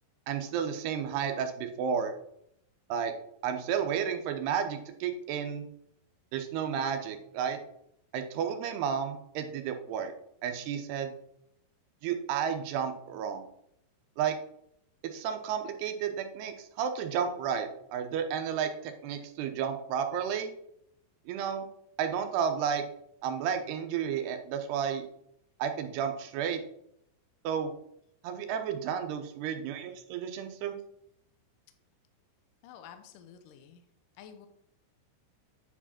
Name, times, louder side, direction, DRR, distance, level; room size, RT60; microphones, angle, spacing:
voice 1, 0.3-2.1 2.9-3.1 3.4-5.7 6.3-7.6 8.1-10.1 10.4-11.1 12.0-13.4 14.2-14.3 15.1-20.5 21.3-21.7 22.0-22.8 23.2-25.0 25.6-26.6 27.4-27.7 28.2-30.7, right 7 dB, 80° right, 6 dB, 2.9 m, -32 dB
voice 2, 32.6-33.8 34.2-34.5, left 8 dB, 80° left, 7 dB, 1.9 m, -50 dB
9.9 x 4.7 x 4.3 m, 0.73 s
omnidirectional pair, 4.7 m